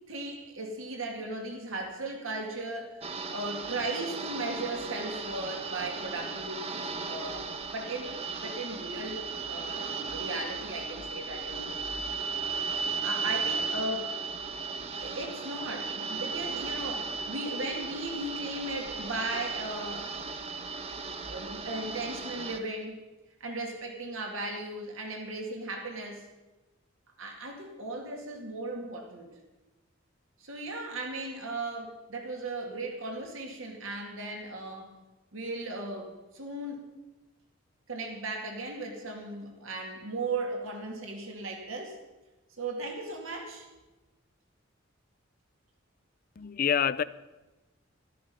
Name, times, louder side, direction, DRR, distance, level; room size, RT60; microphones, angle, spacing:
voice 1, 0.1-3.0 3.3-8.1 8.4-11.8 13.0-14.1 14.9-20.1 21.3-23.0 23.4-26.3 27.2-29.3 30.4-35.0 35.3-36.9 37.9-42.0 42.6-43.7, right 2 dB, 85° right, 2.3 m, -37 dB
sound 1, 3.0-22.6, right 5 dB, 30° right, 0.8 m, -36 dB
voice 2, 46.4-47.0, left 8 dB, 45° left, 0.4 m, -26 dB
13.5 x 13.0 x 5.5 m
head